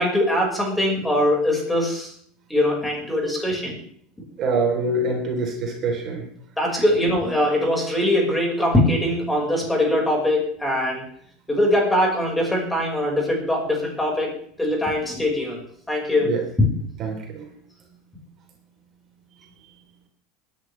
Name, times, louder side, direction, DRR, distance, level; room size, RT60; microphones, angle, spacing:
voice 1, 0.0-2.1 2.5-3.8 6.6-11.0 11.5-15.6 15.9-16.7, left 1 dB, 10° left, -1 dB, 5.5 m, -22 dB
voice 2, 4.4-6.2 16.2-16.4 17.0-17.5, right 3 dB, 45° right, 1 dB, 3.8 m, -24 dB
19.5 x 10.5 x 3.5 m, 0.62 s
supercardioid pair, 110°, 0 cm